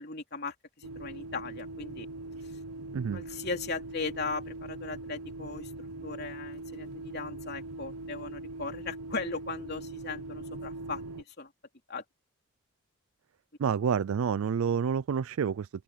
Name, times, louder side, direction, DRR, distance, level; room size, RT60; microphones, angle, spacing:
voice 1, 0.0-2.1 2.4-2.5 3.1-5.7 6.0-11.5 11.9-12.0, left 3 dB, 45° left, 3.4 m, -38 dB
sound 1, 0.8-11.2, right 2 dB, 90° right, 0.9 m, -41 dB
voice 2, 13.6-15.7, right 7 dB, 75° right, 0.4 m, -28 dB
open air
head